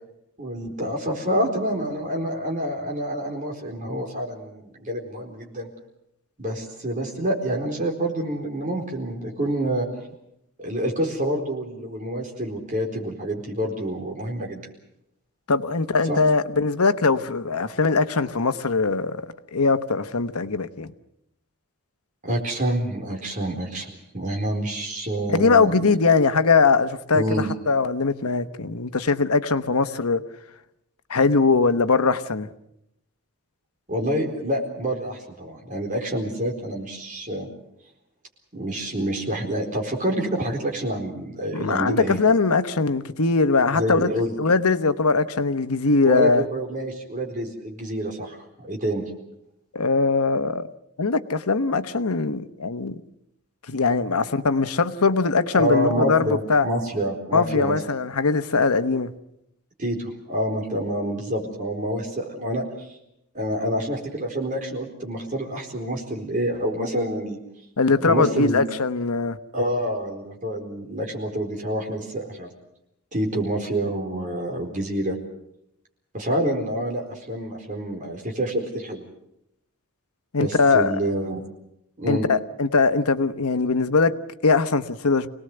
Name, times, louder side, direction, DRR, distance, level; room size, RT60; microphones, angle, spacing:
voice 1, 0.4-5.7 6.4-9.9 10.6-14.6 16.0-16.2 22.2-25.7 27.1-27.5 33.9-37.5 38.5-42.2 43.7-44.3 46.0-49.0 55.5-57.8 59.8-62.9 63.3-67.4 68.0-68.6 69.5-72.5 73.1-75.2 76.1-79.0 80.4-81.4 82.0-82.3, right 1 dB, 35° right, 4.3 m, -27 dB
voice 2, 15.5-20.9 25.3-30.2 31.1-32.5 41.5-44.1 44.4-46.4 49.7-50.7 51.0-53.0 53.7-56.7 57.3-59.1 67.8-69.4 80.3-80.9 82.1-85.3, left 4 dB, 90° left, 1.1 m, -21 dB
26.5 x 19.0 x 7.9 m
head